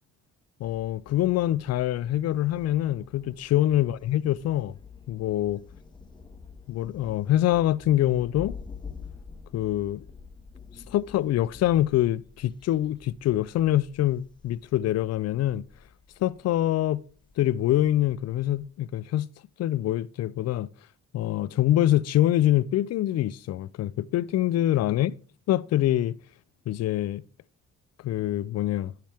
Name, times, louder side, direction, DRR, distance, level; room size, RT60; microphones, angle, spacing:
voice 1, 0.6-4.7 5.1-5.6 6.7-8.5 9.5-10.0 10.9-15.6 16.2-17.0 17.4-19.3 19.6-20.7 21.1-25.1 25.5-26.2 26.7-27.2 28.0-28.9, left 13 dB, 60° left, 0.4 m, -25 dB
Thunder, 0.6-18.7, left 5 dB, 15° left, 0.8 m, -48 dB
10.5 x 5.8 x 3.4 m
cardioid pair, 90°, 30 cm